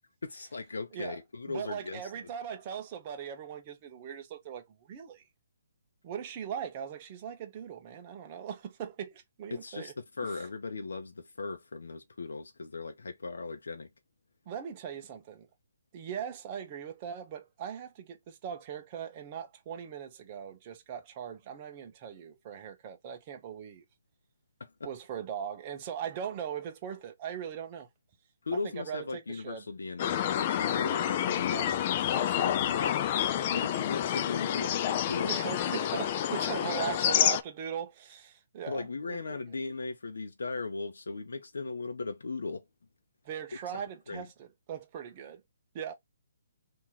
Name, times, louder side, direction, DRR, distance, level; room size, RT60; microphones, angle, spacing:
voice 1, 0.2-2.1 9.5-13.9 24.6-24.9 28.4-31.7 32.1-33.2 33.5-35.3 38.7-42.7 44.1-44.3, left 3 dB, 90° left, 0.7 m, -38 dB
voice 2, 1.5-5.2 6.0-9.9 14.5-15.5 15.9-23.8 24.8-27.9 28.8-29.6 31.5-31.7 35.3-39.4 43.2-45.4 45.7-45.9, right 8 dB, 25° right, 0.8 m, -40 dB
sound 1, 30.0-37.4, left 10 dB, 30° left, 0.3 m, -28 dB
3.0 x 2.8 x 3.7 m
hypercardioid pair, 165°, 0 cm